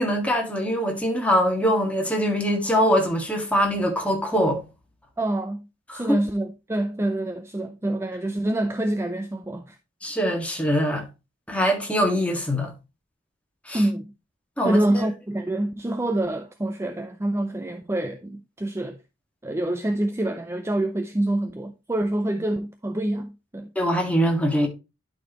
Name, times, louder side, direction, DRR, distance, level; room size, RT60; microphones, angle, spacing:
voice 1, 0.0-4.6 5.9-6.2 10.0-11.0 11.5-12.7 13.7-13.8 14.6-15.1 23.7-24.7, equal, 5° left, 1.7 m, -23 dB
voice 2, 5.2-5.7 5.9-9.8 13.7-14.1 14.6-19.0 19.4-23.7, right 1 dB, 15° right, 0.5 m, -26 dB
11.5 x 4.3 x 2.9 m
head